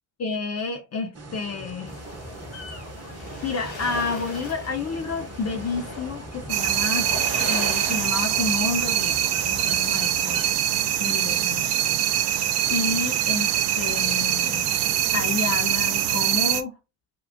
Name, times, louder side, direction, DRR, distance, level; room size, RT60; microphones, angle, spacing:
voice 1, 0.2-1.9 3.4-10.5 11.0-11.8 12.7-14.7 15.1-16.8, left 4 dB, 35° left, 0.5 m, -30 dB
sound 1, 1.1-16.3, right 2 dB, 30° right, 0.9 m, -42 dB
sound 2, 1.8-10.5, left 2 dB, 85° left, 1.5 m, -37 dB
sound 3, 6.5-16.6, right 11 dB, 60° right, 0.5 m, -23 dB
3.5 x 2.3 x 2.5 m
hypercardioid pair, 45°, 49 cm